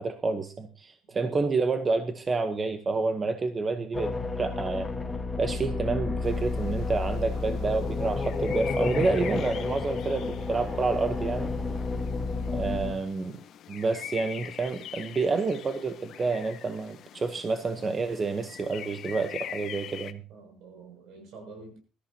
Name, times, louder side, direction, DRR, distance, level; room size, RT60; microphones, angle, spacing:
voice 1, 0.0-4.9 5.4-11.5 12.5-13.4 13.7-20.2, right 3 dB, 20° right, 8 dB, 1.0 m, -29 dB
sound 1, 3.9-12.9, left 3 dB, 15° left, 1.4 m, -31 dB
sound 2, 6.2-20.1, left 10 dB, 50° left, 0.9 m, -44 dB
voice 2, 20.3-21.8, right 3 dB, 65° right, 4 dB, 6.9 m, -48 dB
22.5 x 13.5 x 2.9 m, 0.35 s
cardioid pair, 170°, 0 cm